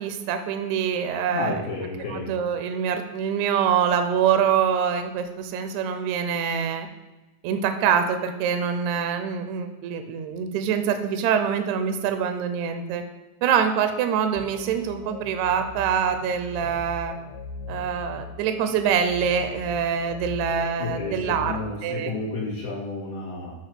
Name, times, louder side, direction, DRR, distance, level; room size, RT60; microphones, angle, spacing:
voice 1, 0.0-1.6 2.1-6.9 7.4-13.0 13.4-17.2 17.7-21.5 21.8-22.1, right 7 dB, 75° right, 8 dB, 1.8 m, -25 dB
voice 2, 1.3-2.2 20.8-23.5, left 3 dB, 65° left, -4 dB, 3.2 m, -31 dB
sound 1, 14.4-21.7, left 4 dB, 85° left, 2.2 m, -39 dB
8.5 x 3.0 x 5.9 m, 1.1 s
omnidirectional pair, 3.6 m